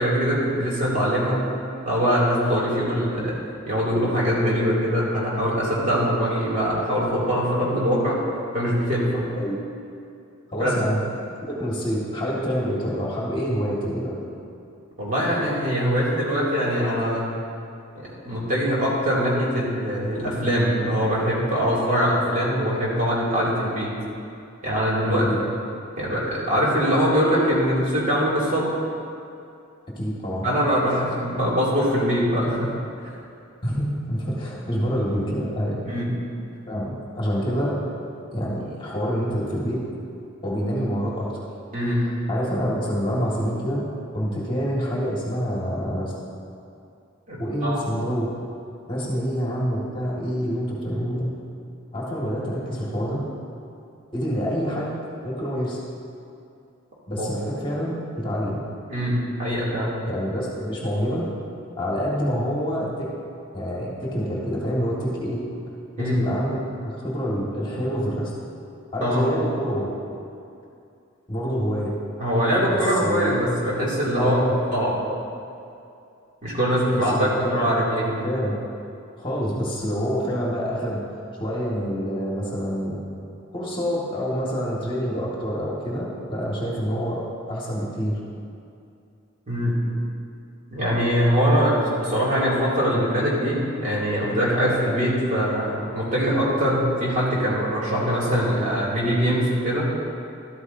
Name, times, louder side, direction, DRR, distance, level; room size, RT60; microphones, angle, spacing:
voice 1, 0.0-1.4 1.8-3.3 3.7-8.2 8.5-9.3 10.6-10.7 15.0-17.3 17.9-23.9 24.6-25.2 26.0-28.6 30.4-32.7 35.9-36.1 41.7-42.0 47.3-47.8 57.2-57.3 58.9-60.0 66.0-66.2 69.0-69.3 72.2-74.4 74.7-74.9 76.4-78.2 89.5-89.8 90.7-99.9, equal, 40° right, -7 dB, 2.6 m, -22 dB
voice 2, 10.5-11.0 11.4-14.2 25.1-25.4 29.9-30.5 33.6-35.8 36.7-37.8 38.3-39.8 40.4-41.3 42.3-43.8 44.1-46.1 47.4-48.3 48.9-51.3 51.9-53.2 54.1-54.9 55.2-55.8 57.1-58.6 60.1-61.2 61.8-63.1 63.5-65.4 66.0-68.3 68.9-69.9 71.3-71.9 72.7-73.4 74.2-74.5 76.9-77.6 78.2-78.5 79.2-81.0 81.3-83.0 83.5-87.2 87.5-88.2, equal, 25° left, -5 dB, 1.8 m, -27 dB
13.0 x 13.0 x 2.7 m, 2.6 s
head